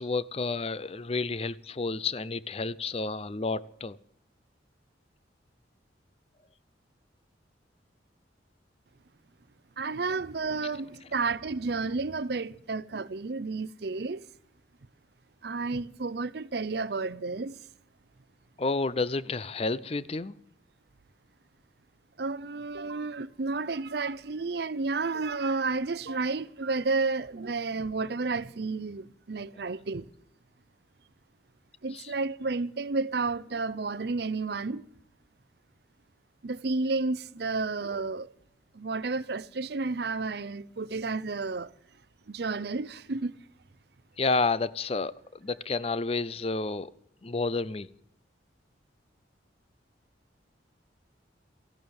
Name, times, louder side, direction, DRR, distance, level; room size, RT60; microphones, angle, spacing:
voice 1, 0.0-4.0 18.6-20.4 31.9-32.1 44.2-46.9 47.2-47.9, left 3 dB, 30° left, 0.5 m, -30 dB
voice 2, 9.8-14.3 15.4-17.6 22.2-30.1 31.8-34.9 36.4-38.3 38.7-41.7 42.3-43.4, right 3 dB, 60° right, 0.6 m, -31 dB
sound 1, 22.7-23.1 25.1-25.7 26.1-26.8, right 4 dB, 90° right, 1.4 m, -45 dB
14.5 x 12.0 x 7.1 m
head